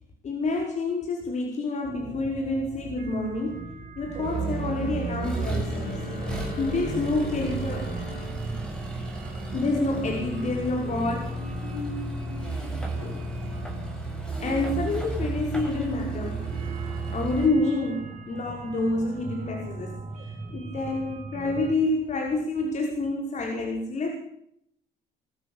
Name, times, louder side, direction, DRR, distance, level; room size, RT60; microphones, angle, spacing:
voice 1, 0.2-3.6 4.0-6.1 6.6-7.9 9.5-11.2 13.0-13.2 14.4-16.5 17.1-19.9 20.2-24.2, left 2 dB, 45° left, 1 dB, 5.7 m, -28 dB
sound 1, 1.8-21.7, right 4 dB, 45° right, 6.5 m, -37 dB
Accelerating revving vroom, 4.2-17.5, right 1 dB, 5° left, 6.8 m, -34 dB
Bowed string instrument, 4.4-9.9, left 3 dB, 80° left, 4.8 m, -44 dB
23.5 x 14.0 x 9.0 m, 0.72 s
cardioid pair, 110°, 17 cm